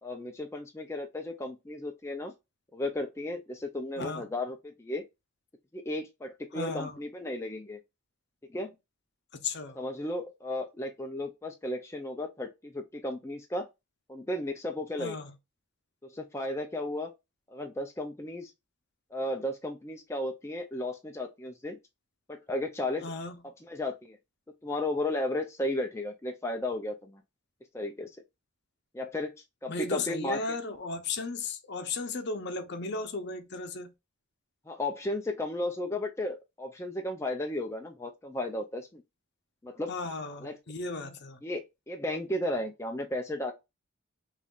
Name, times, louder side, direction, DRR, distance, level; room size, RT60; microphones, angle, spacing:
voice 1, 0.0-2.3 2.7-5.0 5.7-7.8 8.5-8.7 9.7-13.7 14.1-15.2 16.0-17.1 17.5-18.5 19.1-21.8 22.3-23.1 23.4-24.2 24.6-27.2 27.7-28.2 28.9-29.3 29.6-30.4 34.7-39.0 39.6-39.9 40.4-40.6 41.4-43.5, left 1 dB, 10° left, 0.4 m, -34 dB
voice 2, 6.5-7.0 9.3-9.8 15.0-15.3 23.0-23.4 29.7-33.9 39.9-41.4, left 3 dB, 50° left, 0.7 m, -35 dB
5.3 x 3.2 x 2.4 m
head